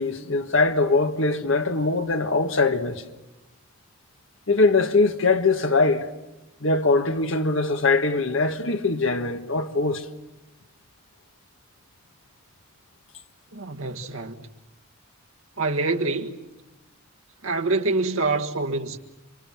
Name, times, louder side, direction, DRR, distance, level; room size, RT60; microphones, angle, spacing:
voice 1, 0.0-3.0 4.5-6.0 6.6-10.0, left 3 dB, 70° left, 1.6 m, -22 dB
voice 2, 13.5-14.4 15.6-16.4 17.4-19.0, right 3 dB, 80° right, 1.7 m, -26 dB
29.5 x 25.0 x 7.6 m
head